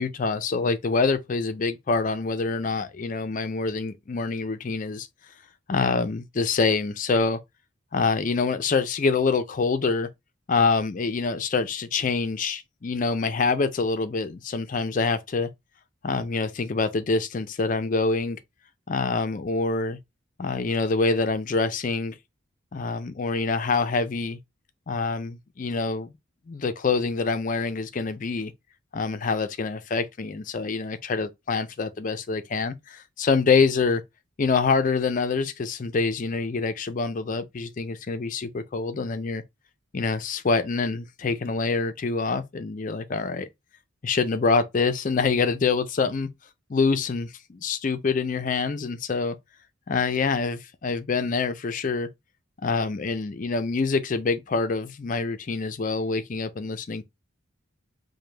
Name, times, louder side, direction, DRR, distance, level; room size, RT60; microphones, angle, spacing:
voice 1, 0.0-5.1 5.7-7.4 7.9-10.1 10.5-15.5 16.0-18.4 18.9-20.0 20.4-22.1 22.7-24.4 24.9-26.1 26.5-28.5 28.9-34.0 34.4-39.4 39.9-43.5 44.0-46.3 46.7-49.4 49.9-52.1 52.6-57.0, left 4 dB, 40° left, 0.4 m, -26 dB
5.0 x 2.1 x 3.2 m
head